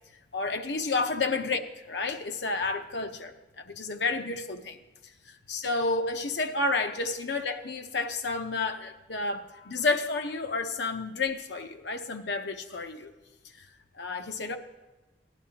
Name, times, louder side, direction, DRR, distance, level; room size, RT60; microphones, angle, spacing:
voice 1, 0.3-1.6 1.9-4.8 5.3-13.1 13.6-13.7 13.9-14.6, left 3 dB, 65° left, 0.8 m, -30 dB
17.0 x 11.0 x 2.9 m
head